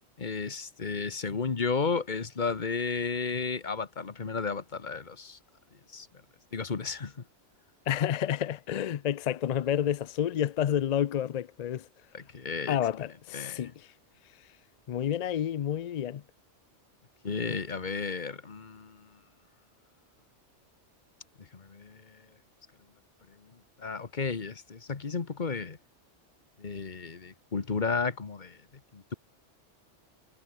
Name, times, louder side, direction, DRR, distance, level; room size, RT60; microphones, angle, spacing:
voice 1, 0.0-5.4 5.9-6.1 6.5-7.1 12.1-12.8 13.3-13.7 17.2-19.1 21.5-22.2 23.8-25.8 26.6-28.6 28.9-29.1, left 5 dB, 40° left, 1.4 m, -33 dB
voice 2, 7.9-11.9 12.7-13.9 14.9-16.2, left 10 dB, 65° left, 0.4 m, -29 dB
omnidirectional pair, 1.2 m